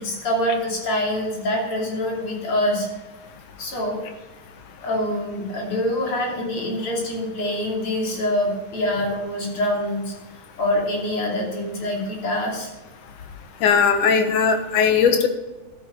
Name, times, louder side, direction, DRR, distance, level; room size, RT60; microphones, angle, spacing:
voice 1, 0.0-2.9 3.6-4.0 4.8-10.1 10.6-12.7, left 1 dB, 45° left, -2 dB, 3.5 m, -25 dB
voice 2, 13.6-15.3, left 6 dB, 80° left, 6 dB, 2.6 m, -18 dB
12.5 x 8.9 x 3.9 m, 1.2 s
omnidirectional pair, 3.6 m